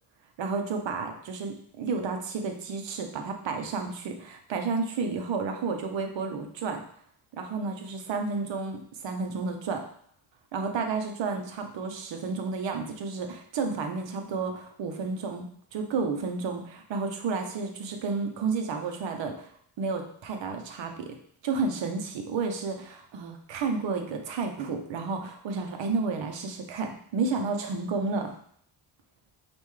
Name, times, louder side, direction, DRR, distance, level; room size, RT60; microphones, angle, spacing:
voice 1, 0.4-6.8 7.3-9.8 10.5-19.5 19.8-21.1 21.4-28.3, right 4 dB, 70° right, 4 dB, 0.9 m, -31 dB
5.4 x 2.6 x 3.2 m, 0.63 s
cardioid pair, 95°, 46 cm